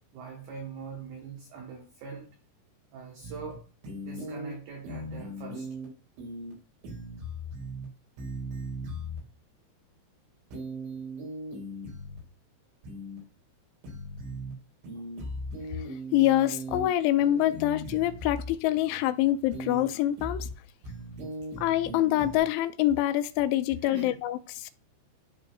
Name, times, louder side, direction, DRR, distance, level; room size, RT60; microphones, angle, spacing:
voice 1, 0.1-2.3 2.9-3.7 4.0-5.7 15.0-15.1 23.8-24.2, right 5 dB, 70° right, 2.6 m, -42 dB
sound 1, 3.2-3.5 3.8-4.5 4.8-5.8 6.2-6.5 6.8-7.8 8.2-9.2 10.5-12.2 12.8-13.2 13.8-14.5 14.8-16.8 17.2-18.5 19.5-19.8 20.2-20.5 20.8-22.4, right 1 dB, 85° right, 6.0 m, -38 dB
voice 2, 15.7-20.5 21.6-24.7, left 14 dB, 85° left, 2.8 m, -26 dB
13.0 x 4.8 x 2.3 m
omnidirectional pair, 5.4 m